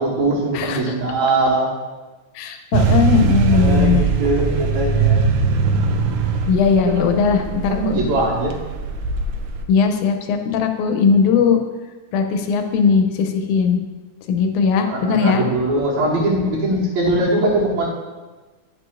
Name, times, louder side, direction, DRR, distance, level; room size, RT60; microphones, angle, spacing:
voice 1, 0.0-1.7 3.5-5.3 6.8-8.6 14.8-17.9, right 2 dB, 70° right, -3 dB, 2.5 m, -21 dB
voice 2, 2.4-4.0 6.5-8.0 9.7-11.6 12.1-13.8 14.3-15.4, left 6 dB, 80° left, 5 dB, 2.0 m, -18 dB
sound 1, 2.7-9.6, right 4 dB, 85° right, 2.1 m, -20 dB
9.5 x 6.8 x 2.5 m, 1.3 s
omnidirectional pair, 3.5 m